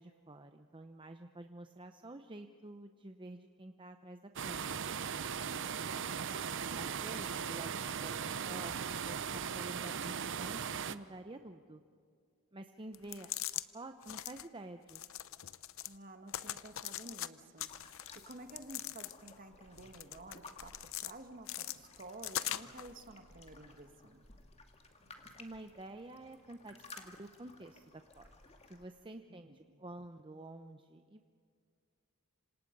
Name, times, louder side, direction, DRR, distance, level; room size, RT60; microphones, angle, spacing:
voice 1, 0.0-5.2 6.7-8.7 9.1-11.8 12.5-13.3 13.7-15.0 25.4-28.3 28.7-31.2, right 2 dB, 25° right, 7 dB, 0.8 m, -50 dB
sound 1, 4.4-11.0, right 7 dB, 60° right, 0.8 m, -38 dB
sound 2, 12.9-13.7 14.0-14.5 14.9-16.0 16.3-17.3 17.6-19.4 19.8-21.1 21.5-22.9, left 13 dB, 65° left, 0.7 m, -41 dB
voice 2, 15.9-17.7 18.3-24.2 29.3-29.8, right 2 dB, 40° right, 6 dB, 1.9 m, -52 dB
sound 3, 17.7-28.9, left 3 dB, 30° left, 2.3 m, -57 dB
27.0 x 26.5 x 5.4 m, 2.1 s
head